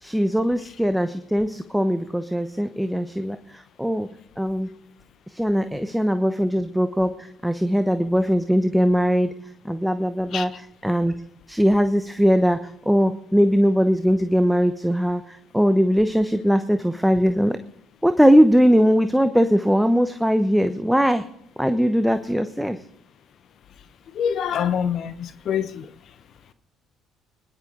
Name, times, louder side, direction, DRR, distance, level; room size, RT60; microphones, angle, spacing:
voice 1, 0.0-4.1 4.4-4.7 5.3-9.3 9.6-11.1 11.5-17.6 18.0-21.2 21.6-22.8, equal, ahead, 10 dB, 1.0 m, -20 dB
voice 2, 24.1-25.8, left 8 dB, 50° left, 12 dB, 1.0 m, -25 dB
23.0 x 11.0 x 3.9 m, 0.77 s
figure-of-eight pair, 50°, 0 cm